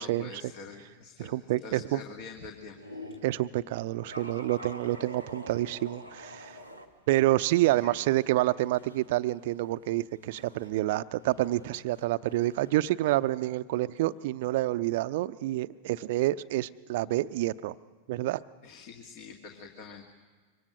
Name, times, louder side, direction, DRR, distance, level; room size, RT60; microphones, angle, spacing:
voice 1, 0.0-3.0 7.8-7.9 18.6-20.0, left 4 dB, 45° left, 4 dB, 1.9 m, -46 dB
voice 2, 1.2-2.0 3.2-6.5 7.1-17.7 18.1-18.4, right 16 dB, 50° right, 14 dB, 0.6 m, -28 dB
sound 1, 2.7-3.3 4.0-6.8 7.3-12.8, equal, 90° left, 1.9 m, -47 dB
26.0 x 24.0 x 6.6 m, 1.4 s
figure-of-eight pair, 90°, 0 cm